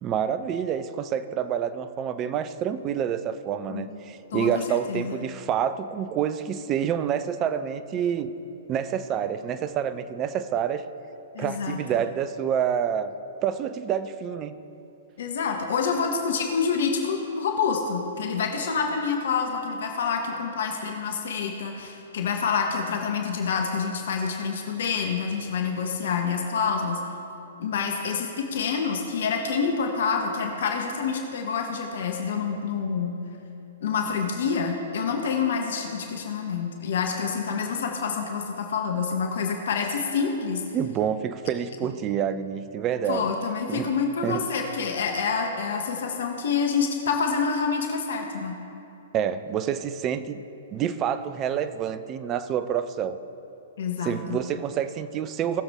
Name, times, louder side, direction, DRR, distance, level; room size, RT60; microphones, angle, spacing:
voice 1, 0.0-8.3 8.7-10.9 11.4-13.1 13.4-14.5 40.7-43.4 43.7-43.9 44.2-44.4 49.1-50.4 50.7-53.2 54.0-55.6, right 9 dB, 30° right, 12 dB, 0.6 m, -28 dB
voice 2, 4.3-5.2 11.3-12.0 15.2-27.0 27.6-33.2 33.8-40.6 43.1-48.5 53.8-54.4, left 5 dB, 60° left, 2 dB, 1.3 m, -27 dB
19.0 x 7.1 x 3.7 m, 2.8 s
figure-of-eight pair, 115°, 0 cm